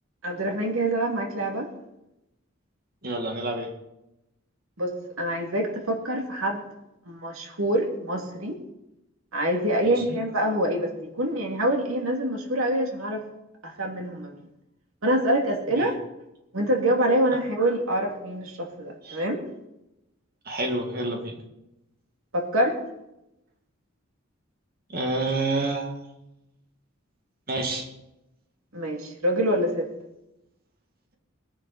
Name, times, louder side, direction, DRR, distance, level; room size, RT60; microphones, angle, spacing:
voice 1, 0.2-1.7 4.8-4.9 5.2-6.6 7.1-8.6 9.3-10.9 11.2-13.2 13.6-14.4 15.0-15.9 16.5-19.4 22.3-22.8 28.7-29.9, right 1 dB, 85° right, 1 dB, 2.8 m, -25 dB
voice 2, 3.0-3.7 9.8-10.2 15.7-15.9 19.0-19.2 20.5-21.3 24.9-25.9 27.5-27.9, right 2 dB, 45° right, 2 dB, 2.1 m, -28 dB
21.0 x 10.5 x 4.3 m, 0.91 s
head